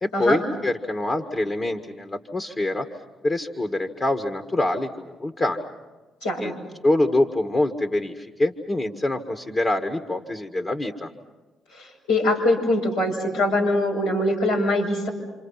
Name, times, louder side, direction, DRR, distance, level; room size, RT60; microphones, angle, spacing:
voice 1, 0.0-2.9 3.2-5.7 6.4-6.5 6.8-11.1, left 1 dB, 35° left, 6 dB, 1.8 m, -25 dB
voice 2, 6.2-6.5 11.7-15.1, left 1 dB, 85° left, -5 dB, 5.8 m, -23 dB
28.0 x 27.5 x 5.8 m, 1.2 s
hypercardioid pair, 50°, 0 cm